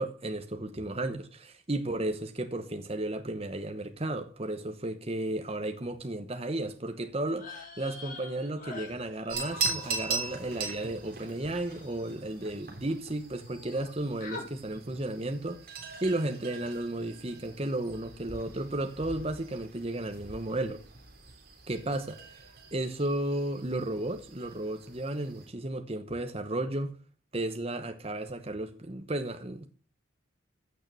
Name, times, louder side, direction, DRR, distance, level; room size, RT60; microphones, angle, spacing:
voice 1, 0.0-20.8 21.7-22.4 22.7-27.0 27.3-29.7, right 1 dB, 30° right, 1.0 m, -34 dB
sound 1, 7.3-12.9 13.2-13.9 14.2-14.5, left 3 dB, 40° left, 3.7 m, -47 dB
sound 2, 9.3-25.5, right 4 dB, 45° right, 3.5 m, -40 dB
15.0 x 6.6 x 6.8 m
head